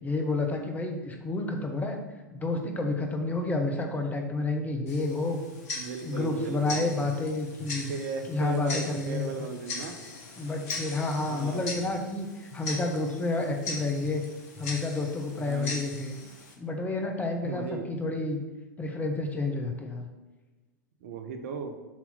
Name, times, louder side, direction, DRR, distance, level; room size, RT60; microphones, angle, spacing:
voice 1, 0.0-2.0 2.3-5.4 6.0-7.9 8.3-9.3 10.4-14.2 14.6-16.1 16.6-18.4 18.8-20.1, left 2 dB, 15° left, 3 dB, 0.9 m, -30 dB
Tick-tock, 4.9-16.5, left 3 dB, 50° left, 1.5 m, -40 dB
voice 2, 5.8-6.9 7.9-9.9 11.2-11.7 15.4-15.7 17.4-17.8 21.0-21.7, right 5 dB, 50° right, 6 dB, 0.8 m, -36 dB
7.4 x 3.0 x 5.5 m, 1.2 s
figure-of-eight pair, 95°, 10 cm